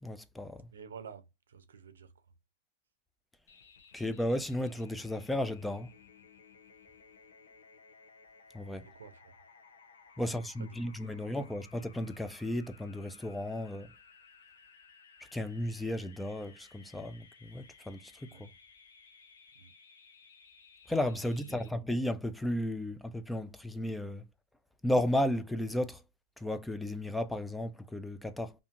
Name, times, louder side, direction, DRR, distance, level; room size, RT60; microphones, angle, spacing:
voice 1, 0.0-0.7 3.9-5.9 8.5-8.8 10.2-13.9 15.3-18.5 20.9-24.2 24.8-26.0 26.4-28.5, left 1 dB, 5° left, 0.3 m, -34 dB
voice 2, 0.7-2.2 8.8-9.3 10.2-11.5 18.3-18.5 19.5-19.7 21.3-21.7, right 6 dB, 85° right, 0.5 m, -51 dB
sound 1, 3.5-21.7, left 5 dB, 80° left, 0.6 m, -58 dB
2.6 x 2.5 x 2.4 m
hypercardioid pair, 115°, 0 cm